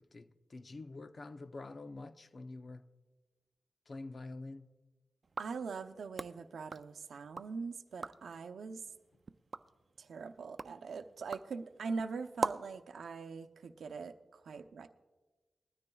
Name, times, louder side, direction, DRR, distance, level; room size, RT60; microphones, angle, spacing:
voice 1, 0.0-2.9 3.9-4.7, left 2 dB, 45° left, 0.5 m, -47 dB
sound 1, 5.2-7.5 7.9-8.3 8.8-12.8, right 4 dB, 45° right, 0.4 m, -43 dB
voice 2, 5.4-8.8 10.0-14.9, right 4 dB, 90° right, 0.6 m, -42 dB
20.5 x 13.0 x 2.3 m
wide cardioid pair, 105°, 0 cm